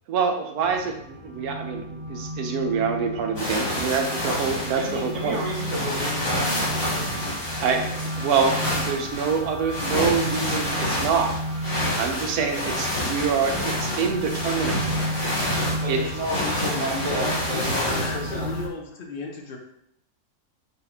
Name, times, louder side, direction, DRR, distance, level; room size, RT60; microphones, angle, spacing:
voice 1, 0.1-5.4 7.6-7.9 8.2-11.3 12.0-14.8 15.9-16.0, right 6 dB, 80° right, 4 dB, 1.1 m, -26 dB
sound 1, 0.6-18.7, equal, 35° right, 1.3 m, -33 dB
sound 2, 3.4-18.6, left 1 dB, 40° left, 1.2 m, -29 dB
voice 2, 4.3-7.2 15.8-18.5, right 1 dB, 55° right, -2 dB, 1.1 m, -32 dB
voice 3, 16.6-19.6, left 3 dB, 75° left, 1 dB, 0.5 m, -35 dB
2.9 x 2.8 x 3.9 m, 0.75 s
omnidirectional pair, 1.6 m